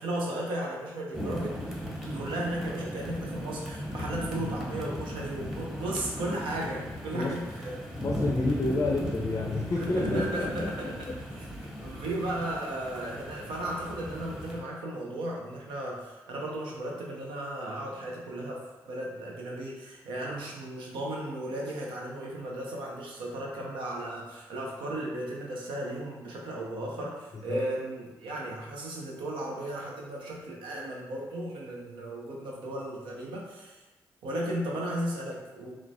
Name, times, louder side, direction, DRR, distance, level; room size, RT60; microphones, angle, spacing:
voice 1, 0.0-7.8 9.8-10.9 11.3-33.8 34.2-35.8, right 1 dB, 80° right, -2 dB, 0.6 m, -35 dB
sound 1, 1.1-14.6, equal, 5° right, 0.7 m, -37 dB
voice 2, 8.0-10.7 27.5-27.6, left 2 dB, 40° left, -1 dB, 0.5 m, -29 dB
3.1 x 2.1 x 2.5 m, 1.1 s
hypercardioid pair, 40°, 8 cm